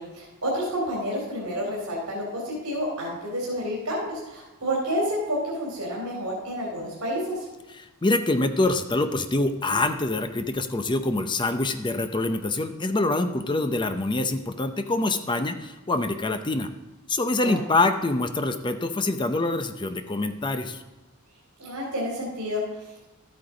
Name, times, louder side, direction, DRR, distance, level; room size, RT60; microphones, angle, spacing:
voice 1, 0.0-7.5 17.4-17.6 21.6-23.1, equal, 75° right, -4 dB, 2.7 m, -30 dB
voice 2, 8.0-16.7 17.1-20.8, left 2 dB, 20° left, 8 dB, 0.6 m, -25 dB
12.5 x 8.7 x 3.9 m, 1.0 s
head